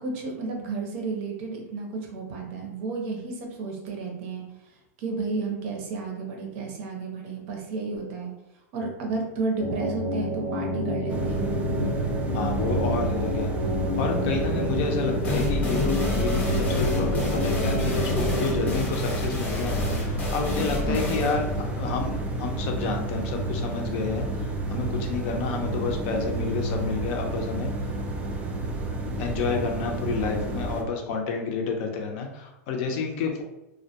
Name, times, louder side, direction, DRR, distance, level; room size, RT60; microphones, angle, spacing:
voice 1, 0.0-4.4 5.0-8.3 8.7-11.5 20.9-21.1, right 4 dB, 55° right, 1 dB, 0.6 m, -32 dB
sound 1, 9.6-18.7, equal, 90° left, 0.7 m, -29 dB
sound 2, 11.1-30.8, right 2 dB, 15° right, 0.3 m, -30 dB
voice 2, 12.3-13.5 14.0-27.7 29.2-33.4, left 4 dB, 50° left, 2 dB, 0.5 m, -30 dB
sound 3, 15.2-22.7, left 3 dB, 20° left, 0.7 m, -30 dB
2.1 x 2.1 x 2.7 m, 0.93 s
hypercardioid pair, 135°, 9 cm